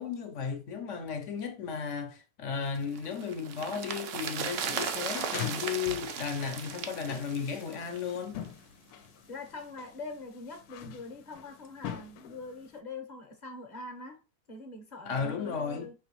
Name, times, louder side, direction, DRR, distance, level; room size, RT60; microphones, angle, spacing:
voice 1, 0.0-8.4 15.0-15.9, left 6 dB, 60° left, 1.0 m, -34 dB
sound 1, 2.8-8.2 8.4-8.5, right 7 dB, 65° right, 0.8 m, -36 dB
sound 2, 4.5-12.8, left 10 dB, 80° left, 1.1 m, -44 dB
voice 2, 9.3-14.2 14.5-15.9, left 3 dB, 35° left, 0.9 m, -43 dB
4.7 x 3.0 x 2.9 m
omnidirectional pair, 1.6 m